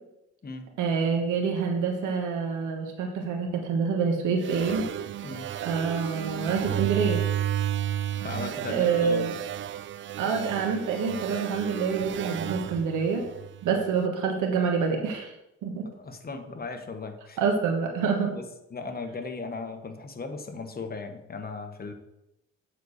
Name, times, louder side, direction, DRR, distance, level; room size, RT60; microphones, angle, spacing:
voice 1, 0.8-4.8 5.6-7.2 8.7-9.3 10.2-13.2 13.6-15.3 15.6-15.8 17.4-18.3, right 5 dB, 90° right, 2 dB, 1.4 m, -26 dB
sound 1, 4.4-13.9, right 11 dB, 40° right, 0.4 m, -32 dB
voice 2, 8.2-9.3 15.9-17.4 18.3-21.9, left 4 dB, 30° left, 5 dB, 1.3 m, -37 dB
7.9 x 4.2 x 6.6 m, 0.88 s
cardioid pair, 90°, 30 cm